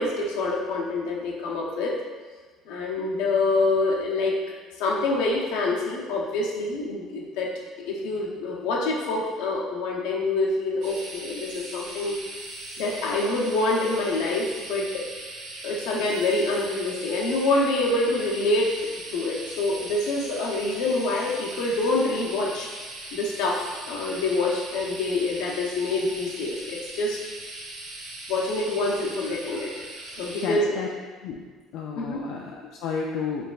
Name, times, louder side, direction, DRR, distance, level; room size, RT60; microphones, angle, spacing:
voice 1, 0.0-2.0 2.7-4.4 4.8-7.5 7.9-12.2 12.8-15.0 15.6-18.7 19.1-22.7 23.1-23.6 23.9-27.2 28.3-29.7 30.1-30.8 32.0-32.2, left 2 dB, 80° left, -2 dB, 0.7 m, -26 dB
sound 1, 10.8-30.5, right 1 dB, 85° right, 1.0 m, -39 dB
voice 2, 30.4-30.9 31.2-31.5 31.7-33.5, left 5 dB, 60° left, -1 dB, 0.3 m, -31 dB
4.7 x 3.3 x 2.4 m, 1.4 s
cardioid pair, 180°, 0 cm